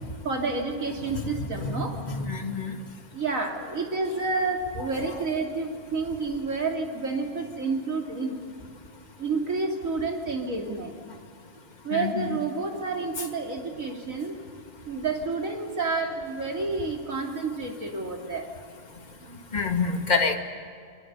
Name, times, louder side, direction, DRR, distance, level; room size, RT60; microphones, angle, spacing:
voice 1, 0.2-1.9 3.1-8.4 9.2-10.9 11.8-14.3 14.9-18.5 19.2-19.4, right 3 dB, 65° right, 1 dB, 3.3 m, -29 dB
voice 2, 1.6-2.7 11.9-12.4 19.5-20.4, left 4 dB, 30° left, 3 dB, 1.9 m, -27 dB
28.0 x 23.0 x 7.0 m, 2.2 s
omnidirectional pair, 1.5 m